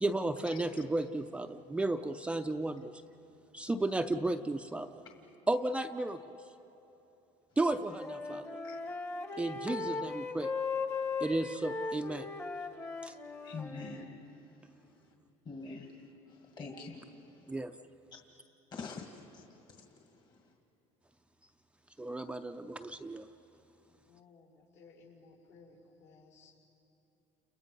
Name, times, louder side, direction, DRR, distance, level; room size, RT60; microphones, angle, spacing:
voice 1, 0.0-3.0 3.5-5.0 5.5-6.4 7.6-8.4 9.4-10.5 11.2-12.3 13.0-13.1 17.5-17.7 22.0-23.3, right 2 dB, 10° right, 6 dB, 0.5 m, -33 dB
Wind instrument woodwind instrument, 7.6-14.1, left 4 dB, 20° left, 1.1 m, -38 dB
voice 2, 13.4-14.2 15.5-15.9 16.6-17.1 18.7-19.4, left 4 dB, 35° left, 2 dB, 1.9 m, -44 dB
voice 3, 23.9-26.6, left 4 dB, 70° left, -2 dB, 5.9 m, -59 dB
30.0 x 29.5 x 5.4 m, 3.0 s
cardioid pair, 130°, 13 cm